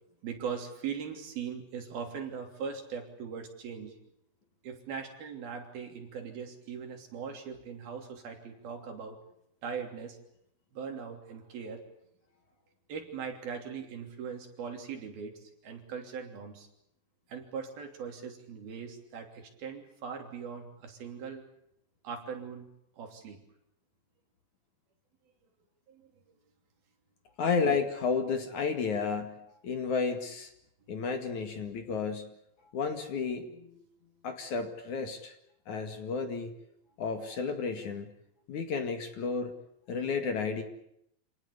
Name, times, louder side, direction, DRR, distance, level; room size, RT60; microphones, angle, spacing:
voice 1, 0.2-4.0 4.6-9.2 9.6-10.2 10.7-11.8 12.9-16.7 17.3-21.4 22.0-22.7 23.0-23.4 25.9-26.1 27.6-27.8 37.3-37.4, right 6 dB, 60° right, 4 dB, 4.8 m, -40 dB
voice 2, 27.4-30.5 30.9-32.3 32.7-33.8 34.2-35.3 35.7-36.5 37.0-38.1 38.5-39.5 39.9-40.6, left 5 dB, 50° left, 6 dB, 3.0 m, -32 dB
27.5 x 19.0 x 8.3 m, 0.76 s
omnidirectional pair, 5.1 m